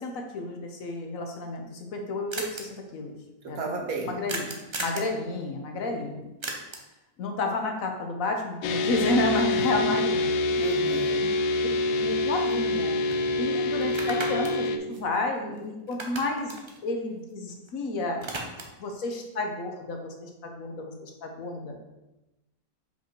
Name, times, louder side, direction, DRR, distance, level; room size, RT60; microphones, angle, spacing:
voice 1, 0.0-3.1 3.5-3.7 4.0-4.5 4.8-6.3 7.2-10.4 12.0-13.0 13.4-16.5 16.8-18.2 18.8-21.8, left 2 dB, 65° left, 3 dB, 1.3 m, -31 dB
sound 1, 1.6-1.7 1.9-2.0 2.3-2.6 4.3-5.1 6.4-7.0 11.2-11.3 11.6-12.8 13.1-13.2 13.8-15.6 15.9-17.7 18.0-18.9, right 2 dB, 30° right, 0.5 m, -37 dB
voice 2, 3.4-4.2 5.9-6.1 10.6-11.3, right 3 dB, 70° right, 1 dB, 1.5 m, -33 dB
sound 2, 8.6-14.8, left 2 dB, 85° left, 1.1 m, -26 dB
5.5 x 5.0 x 4.4 m, 0.97 s
omnidirectional pair, 1.6 m